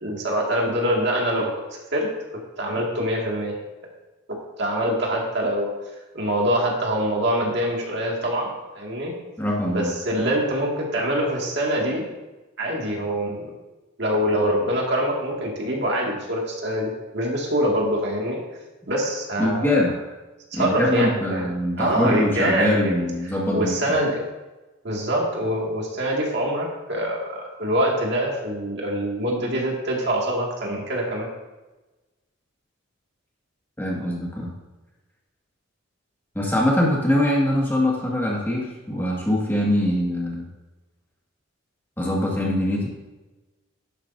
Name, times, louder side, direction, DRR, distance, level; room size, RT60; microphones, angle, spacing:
voice 1, 0.0-1.5 1.9-2.1 2.6-3.5 4.3-5.7 6.1-9.1 9.7-12.1 12.6-13.5 14.0-18.4 18.9-19.7 20.5-21.5 21.8-22.9 23.5-24.2 24.8-31.3, equal, 55° right, -2 dB, 2.2 m, -24 dB
voice 2, 9.4-9.9 19.4-19.9 20.5-23.9 33.8-34.5 36.4-40.5 42.0-42.9, left 1 dB, 10° left, -4 dB, 1.9 m, -23 dB
12.0 x 11.5 x 2.7 m, 1.1 s
head